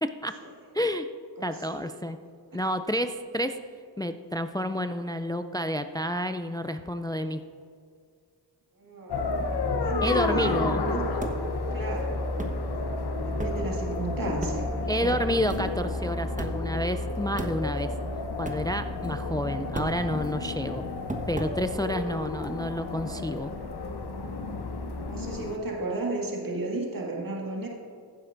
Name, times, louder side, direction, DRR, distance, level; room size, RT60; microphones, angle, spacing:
voice 1, 0.0-0.4 0.7-1.1 1.4-2.2 2.5-3.6 4.0-7.4 10.0-10.8 14.9-17.9 18.4-20.8 21.3-23.5, equal, 10° left, 9 dB, 0.3 m, -29 dB
voice 2, 1.4-2.0 8.8-9.3 9.8-11.1 11.7-12.2 13.3-15.1 25.1-27.7, right 2 dB, 50° right, -2 dB, 2.0 m, -34 dB
sound 1, 9.1-25.6, left 3 dB, 60° left, 0.9 m, -31 dB
sound 2, 11.2-11.4 12.0-12.1 12.4-12.6 13.4-13.6 14.4-14.7 14.9-15.0 15.5-15.7 16.4-16.6 17.4-18.0 18.4-18.6 19.0-19.3 19.6-20.5 21.1-21.6, right 1 dB, 15° right, 1.2 m, -35 dB
15.0 x 7.8 x 2.6 m, 2.2 s
cardioid pair, 50°, 44 cm